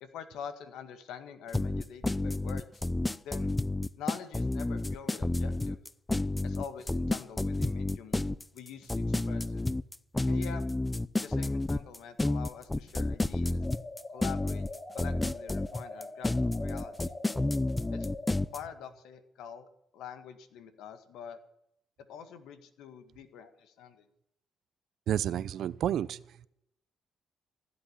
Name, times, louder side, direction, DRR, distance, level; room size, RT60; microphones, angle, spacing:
voice 1, 0.0-2.7 3.2-3.5 4.0-5.8 6.4-8.2 8.5-9.6 10.3-10.6 11.2-13.6 14.1-14.6 14.9-16.3 16.6-17.1 17.9-18.1 18.5-19.7 19.9-21.4 22.1-24.1, left 7 dB, 90° left, 9 dB, 1.8 m, -45 dB
sound 1, 1.5-18.6, left 2 dB, 15° left, 0.6 m, -30 dB
sound 2, 13.6-18.5, left 2 dB, 35° left, 5.2 m, -43 dB
voice 2, 25.1-26.2, right 10 dB, 75° right, 18 dB, 0.6 m, -30 dB
15.5 x 8.0 x 10.0 m, 0.76 s
cardioid pair, 90°, 0 cm